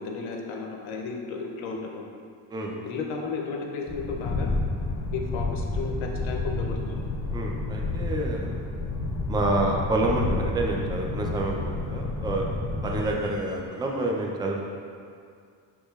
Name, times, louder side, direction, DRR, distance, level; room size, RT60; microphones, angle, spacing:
voice 1, 0.0-2.0 2.8-4.5 5.1-7.0, left 4 dB, 85° left, 1 dB, 0.7 m, -34 dB
sound 1, 3.9-13.1, left 2 dB, 40° left, 0.7 m, -30 dB
voice 2, 7.3-8.5 9.3-12.4 12.8-14.6, right 2 dB, 10° right, -1 dB, 0.4 m, -28 dB
6.3 x 3.0 x 2.4 m, 2.3 s
cardioid pair, 85°, 46 cm